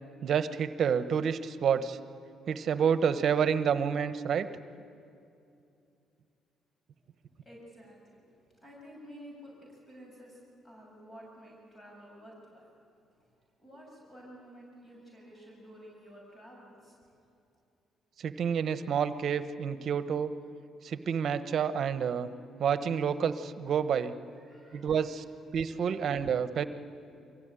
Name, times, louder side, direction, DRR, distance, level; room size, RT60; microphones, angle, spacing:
voice 1, 0.2-2.0 2.5-4.5 18.2-20.3 20.8-22.3 22.6-24.1 24.7-25.2 25.5-26.6, right 7 dB, 60° right, 12 dB, 1.0 m, -29 dB
voice 2, 7.4-12.7 12.9-13.3 13.6-17.2 24.3-25.3, equal, 25° left, -3 dB, 7.1 m, -52 dB
23.5 x 16.5 x 9.0 m, 2.5 s
cardioid pair, 80°, 0 cm